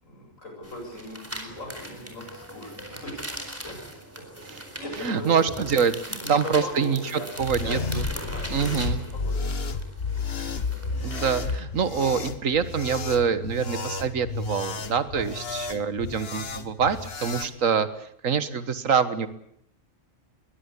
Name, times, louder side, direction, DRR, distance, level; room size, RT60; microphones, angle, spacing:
voice 1, 0.0-3.8 4.7-5.6 6.0-7.3 7.6-7.8 8.1-9.8 15.1-15.2, left 1 dB, 90° left, 2 dB, 8.3 m, -39 dB
sound 1, 0.6-11.6, equal, 10° right, 4.3 m, -40 dB
voice 2, 5.0-7.0 7.4-8.0 8.5-9.0 11.0-19.3, right 6 dB, 85° right, 12 dB, 1.8 m, -25 dB
sound 2, 7.4-17.5, left 4 dB, 50° left, 1.7 m, -32 dB
22.0 x 21.5 x 8.4 m, 0.69 s
omnidirectional pair, 1.3 m